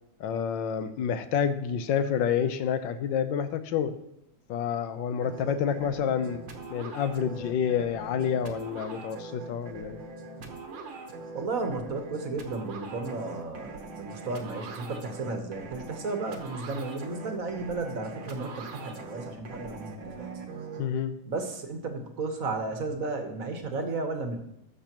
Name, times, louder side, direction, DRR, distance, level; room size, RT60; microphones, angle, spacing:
voice 1, 0.2-3.9 4.5-6.4 6.7-10.0 20.8-21.1, left 8 dB, 75° left, 10 dB, 1.4 m, -28 dB
sound 1, 5.2-20.8, right 3 dB, 80° right, 2.0 m, -42 dB
voice 2, 11.3-20.4 21.2-24.4, right 3 dB, 50° right, 5 dB, 1.5 m, -34 dB
19.5 x 6.8 x 3.0 m, 0.80 s
omnidirectional pair, 2.1 m